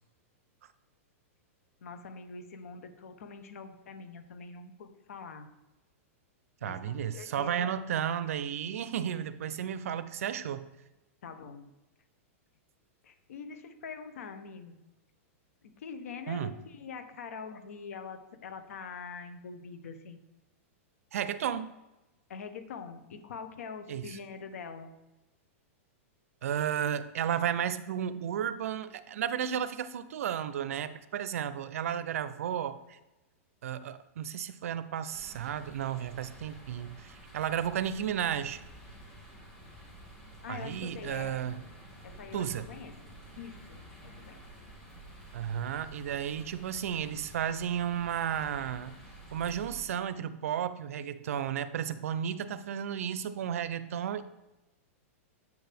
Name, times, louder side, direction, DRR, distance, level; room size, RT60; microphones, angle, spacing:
voice 1, 1.8-5.5 6.6-7.7 11.2-11.7 13.0-14.8 15.8-20.2 22.3-24.9 40.4-41.4 42.0-43.0 43.4-44.4, left 5 dB, 85° left, 9 dB, 0.9 m, -44 dB
voice 2, 6.6-10.7 16.3-16.5 21.1-21.7 23.9-24.1 26.4-33.0 33.6-38.6 40.5-41.6 42.3-42.6 45.3-48.9 49.3-54.2, right 9 dB, 75° right, 14 dB, 0.5 m, -33 dB
sound 1, 35.1-49.8, right 1 dB, 5° left, 2.1 m, -50 dB
8.0 x 4.7 x 3.4 m, 1.0 s
supercardioid pair, 165°, 8 cm